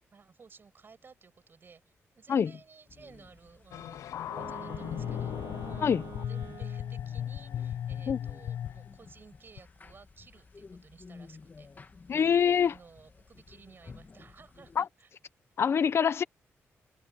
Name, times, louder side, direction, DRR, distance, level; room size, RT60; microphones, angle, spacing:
voice 1, 0.1-1.8 2.2-5.9 6.2-15.1, right 5 dB, 45° right, 7.1 m, -56 dB
sound 1, 2.9-14.8, left 4 dB, 35° left, 2.4 m, -53 dB
sound 2, 3.7-9.0 9.6-9.7, left 10 dB, 90° left, 0.5 m, -37 dB
Wind instrument woodwind instrument, 4.2-7.1, right 9 dB, 80° right, 3.2 m, -46 dB
voice 2, 12.1-12.7 14.8-14.9 15.6-16.2, left 7 dB, 55° left, 0.9 m, -25 dB
open air
cardioid pair, 105°, 5 cm